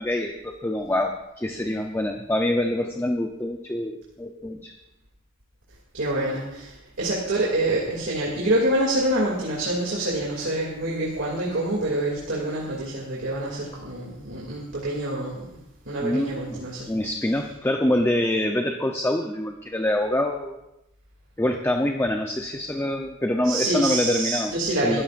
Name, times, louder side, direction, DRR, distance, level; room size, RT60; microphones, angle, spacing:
voice 1, 0.0-4.7 16.0-20.5 21.4-24.5 24.8-25.0, left 1 dB, 10° left, 3 dB, 0.7 m, -25 dB
voice 2, 5.9-15.5 15.9-16.9 23.4-25.0, right 1 dB, 65° right, -4 dB, 2.6 m, -26 dB
22.0 x 13.0 x 2.6 m, 0.91 s
head